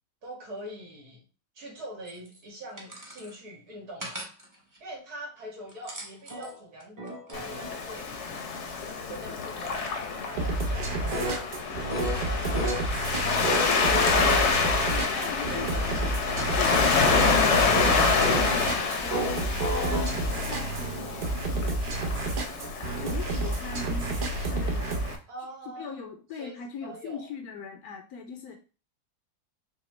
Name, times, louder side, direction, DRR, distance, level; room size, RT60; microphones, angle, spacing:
voice 1, 0.2-1.2 1.5-4.3 4.8-7.0 7.3-8.4 9.0-13.1 15.4-16.0 25.3-26.0 26.4-27.3, right 1 dB, 80° right, -2 dB, 2.2 m, -44 dB
sound 1, 2.1-2.2 2.8-3.3 4.0-4.4 5.7-7.8 11.1-11.4 11.9-12.2 12.5-12.8 13.4-14.9 17.0-17.3 17.7-18.5 18.9-20.6, right 1 dB, 15° right, 0.7 m, -32 dB
Waves surf, 7.3-25.2, left 5 dB, 60° left, 0.9 m, -28 dB
sound 2, 10.4-25.1, right 2 dB, 50° right, 0.6 m, -31 dB
voice 2, 14.2-14.6 14.9-16.2 16.5-22.3 22.9-25.2 25.8-28.6, left 6 dB, 80° left, 4 dB, 1.1 m, -40 dB
5.8 x 2.2 x 3.2 m, 0.34 s
omnidirectional pair, 1.6 m